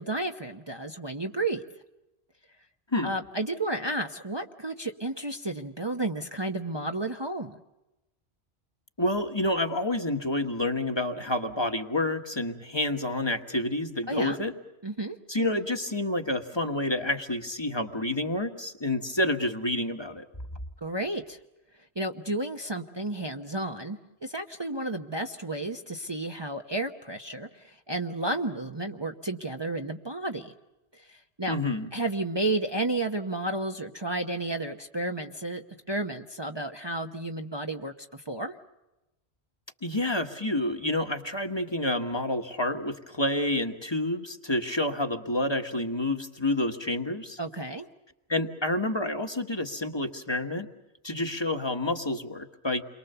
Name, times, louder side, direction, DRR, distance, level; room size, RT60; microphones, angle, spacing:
voice 1, 0.0-1.6 3.0-7.6 14.1-14.4 14.8-15.2 20.8-21.4 22.0-30.5 30.9-31.5 31.9-38.6 47.4-47.9, right 2 dB, 25° right, 3 dB, 1.0 m, -32 dB
voice 2, 9.0-14.5 15.3-20.2 31.5-31.9 39.8-47.4 48.3-50.7 51.0-52.8, left 1 dB, 25° left, 5 dB, 1.5 m, -29 dB
29.5 x 23.0 x 6.9 m, 0.97 s
omnidirectional pair, 1.1 m